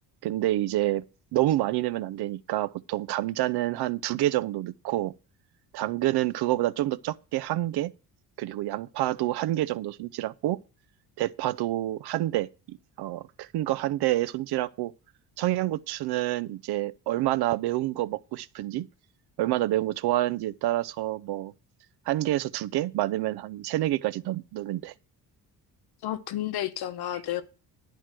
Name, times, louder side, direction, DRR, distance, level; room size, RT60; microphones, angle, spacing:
voice 1, 0.2-1.0 1.3-5.1 5.7-7.9 8.4-10.6 11.2-14.9 15.4-18.9 19.4-21.5 22.1-24.9, right 15 dB, 75° right, 0.6 m, -28 dB
voice 2, 26.0-27.4, left 12 dB, 70° left, 1.0 m, -31 dB
11.5 x 4.7 x 7.5 m
cardioid pair, 180°, 40 cm